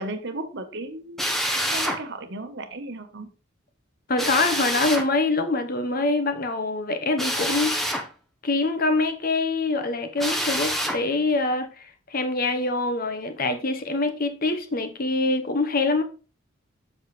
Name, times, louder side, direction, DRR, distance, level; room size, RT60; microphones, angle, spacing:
voice 1, 0.0-3.3, right 2 dB, 55° right, 1.1 m, -35 dB
Drill, 1.2-2.0 4.2-5.1 7.2-8.1 10.2-11.0, equal, ahead, 0.9 m, -26 dB
voice 2, 4.1-7.8 8.4-16.0, left 3 dB, 45° left, 1.0 m, -25 dB
7.6 x 6.4 x 3.2 m
head